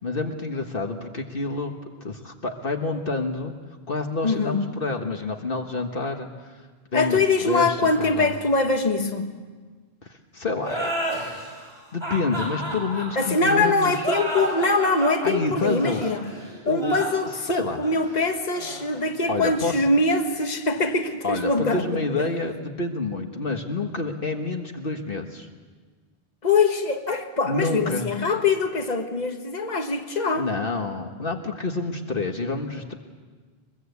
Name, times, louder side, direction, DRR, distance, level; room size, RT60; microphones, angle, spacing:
voice 1, 0.0-1.7 2.0-3.5 3.9-6.6 6.9-8.3 10.0-10.9 11.9-14.1 15.2-16.1 16.7-16.9 17.5-17.8 19.3-19.8 21.2-25.5 27.4-28.1 30.3-33.0, left 3 dB, 55° left, 4 dB, 1.6 m, -28 dB
voice 2, 4.2-4.7 6.9-9.3 13.1-16.3 16.6-22.0 26.4-30.5, left 3 dB, 40° left, 5 dB, 1.6 m, -23 dB
sound 1, 10.6-19.9, right 1 dB, 25° right, 8.0 m, -32 dB
23.0 x 22.0 x 8.2 m, 1.4 s
omnidirectional pair, 1.1 m